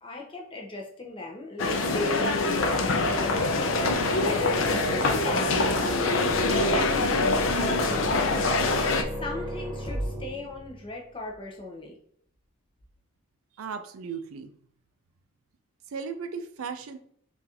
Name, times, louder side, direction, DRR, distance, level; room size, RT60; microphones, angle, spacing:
voice 1, 0.0-3.6 4.2-4.4 4.7-8.6 9.2-11.9, left 2 dB, 25° left, 0 dB, 0.6 m, -37 dB
sound 1, 1.6-9.0, left 3 dB, 70° left, 0.4 m, -25 dB
sound 2, 2.5-10.8, right 1 dB, 20° right, 0.6 m, -35 dB
voice 2, 13.6-14.5 15.9-17.0, right 5 dB, 85° right, 8 dB, 0.4 m, -36 dB
3.8 x 2.4 x 2.8 m, 0.64 s
head